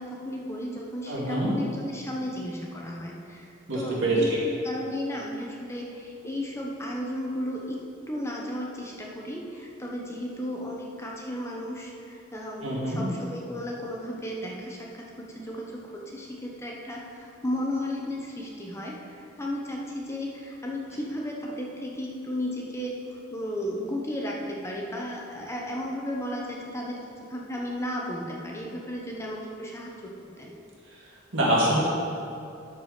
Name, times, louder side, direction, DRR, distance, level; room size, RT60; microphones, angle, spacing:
voice 1, 0.0-7.8 8.1-23.0 23.3-30.1 30.4-30.6, left 1 dB, 15° left, -2 dB, 0.9 m, -34 dB
voice 2, 1.1-1.5 3.7-4.4 12.6-13.1 31.3-31.8, right 1 dB, 75° right, -5 dB, 2.3 m, -25 dB
12.5 x 4.7 x 5.1 m, 2.5 s
head